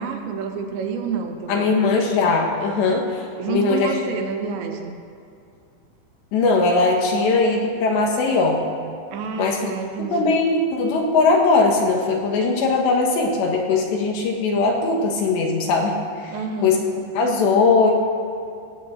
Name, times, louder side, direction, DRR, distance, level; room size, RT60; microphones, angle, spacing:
voice 1, 0.0-1.7 3.4-5.0 7.5-7.6 9.1-10.4 16.3-16.9, right 6 dB, 75° right, 5 dB, 3.1 m, -28 dB
voice 2, 1.5-3.2 3.5-3.9 6.3-8.6 9.4-9.7 10.0-16.4 16.6-16.8 17.2-17.9, left 3 dB, 65° left, 1 dB, 3.4 m, -20 dB
18.0 x 8.2 x 8.0 m, 2.5 s
omnidirectional pair, 5.8 m